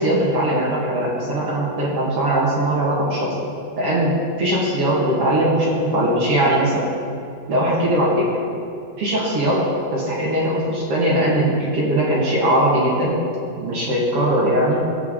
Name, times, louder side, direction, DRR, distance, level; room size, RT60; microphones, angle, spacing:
voice 1, 0.0-3.3 3.8-4.1 4.4-6.9 7.5-8.3 9.0-13.2 13.6-14.8, right 1 dB, 50° right, -6 dB, 1.8 m, -20 dB
18.0 x 7.0 x 3.8 m, 2.4 s
omnidirectional pair, 5.0 m